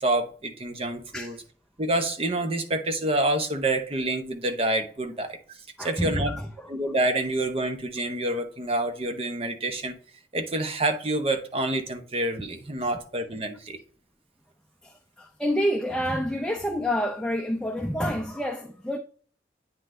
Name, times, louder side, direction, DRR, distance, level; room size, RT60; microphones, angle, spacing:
voice 1, 0.0-1.4 1.8-6.3 6.7-10.0 10.3-13.8, right 1 dB, 35° right, 0.8 m, -27 dB
voice 2, 5.8-6.5 12.9-13.0 14.8-14.9 15.2-19.0, equal, 5° left, 0.5 m, -28 dB
9.0 x 3.9 x 3.3 m
head